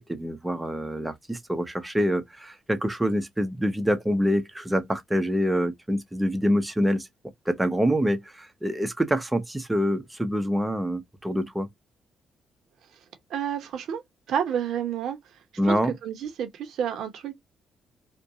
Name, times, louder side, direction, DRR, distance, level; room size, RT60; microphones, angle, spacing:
voice 1, 0.0-7.1 7.5-11.7 15.6-15.9, equal, 10° right, 0.7 m, -26 dB
voice 2, 13.3-14.0 14.3-15.2 15.6-17.3, right 8 dB, 75° right, 0.8 m, -29 dB
2.5 x 2.2 x 2.7 m
cardioid pair, 90°, 0 cm